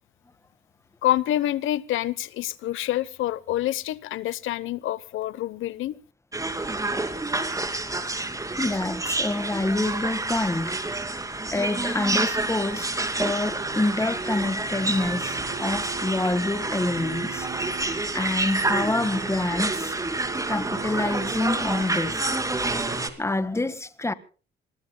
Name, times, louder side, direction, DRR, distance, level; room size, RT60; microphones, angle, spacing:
voice 1, 1.0-5.9, left 13 dB, 80° left, 0.9 m, -27 dB
sound 1, 6.3-23.1, right 2 dB, 15° right, 2.7 m, -28 dB
voice 2, 8.6-10.8 11.5-12.9 13.2-17.5 18.1-19.9 20.5-22.3 23.2-24.1, left 2 dB, 15° left, 1.6 m, -27 dB
sound 2, 13.4-23.1, right 8 dB, 75° right, 3.7 m, -41 dB
27.0 x 21.0 x 2.2 m
cardioid pair, 90°, 20 cm